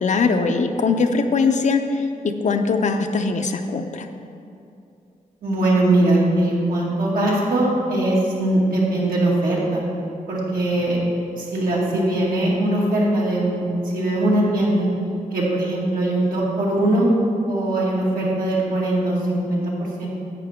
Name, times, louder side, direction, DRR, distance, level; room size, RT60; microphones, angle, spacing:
voice 1, 0.0-2.0 2.4-4.1, left 4 dB, 55° left, 6 dB, 0.6 m, -21 dB
voice 2, 5.4-9.8 10.3-11.0 11.4-13.7 13.9-14.9 15.3-17.1 17.5-20.1, right 1 dB, 85° right, -5 dB, 2.2 m, -21 dB
11.0 x 7.8 x 3.6 m, 2.5 s
wide cardioid pair, 105°, 14 cm